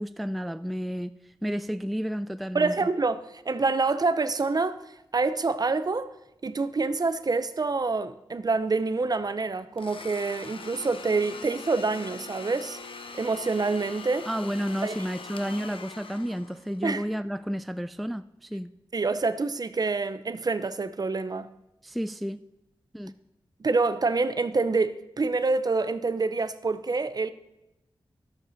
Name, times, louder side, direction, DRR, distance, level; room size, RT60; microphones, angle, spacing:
voice 1, 0.0-2.8 14.3-18.7 21.8-22.4 22.9-23.1, equal, ahead, 0.3 m, -31 dB
voice 2, 2.5-4.8 5.1-6.1 6.4-12.8 13.1-14.3 14.8-15.0 16.8-17.0 18.9-21.5 23.6-27.3, right 3 dB, 45° right, 0.6 m, -26 dB
Domestic sounds home sounds, 9.8-16.8, left 4 dB, 75° left, 0.8 m, -42 dB
12.0 x 6.5 x 6.3 m
wide cardioid pair, 85°, 9 cm